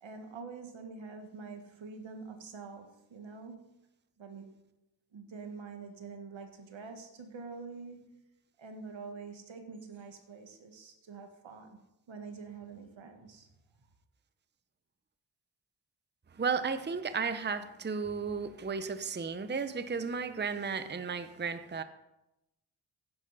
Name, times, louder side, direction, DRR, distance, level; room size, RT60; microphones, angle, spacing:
voice 1, 0.0-3.8 4.2-4.5 5.1-8.2 8.6-11.8 12.1-13.5, right 4 dB, 85° right, 1.7 m, -46 dB
voice 2, 16.4-21.8, right 5 dB, 25° right, 0.7 m, -34 dB
11.0 x 10.5 x 4.1 m
cardioid pair, 80°, 45 cm